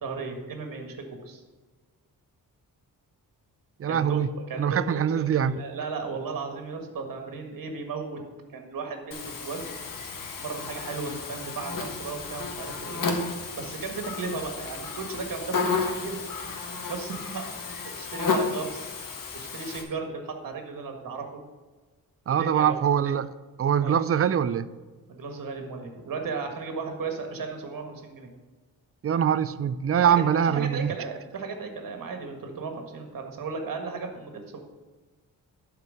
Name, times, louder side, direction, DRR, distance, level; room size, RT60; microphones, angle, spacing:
voice 1, 0.0-1.4 3.9-4.2 4.5-8.2 8.5-9.7 10.4-13.0 13.5-16.2 16.8-17.5 18.0-18.9 19.3-21.4 22.3-22.8 23.8-24.0 25.1-28.3 30.0-30.1 30.4-34.6, right 4 dB, 65° right, 1.7 m, -35 dB
voice 2, 3.8-4.3 4.6-5.6 22.3-23.3 23.6-24.7 29.0-30.9, right 8 dB, 40° right, 0.5 m, -23 dB
Buzz, 9.1-19.8, left 4 dB, 60° left, 1.5 m, -32 dB
12.0 x 4.7 x 6.5 m
cardioid pair, 115°, 36 cm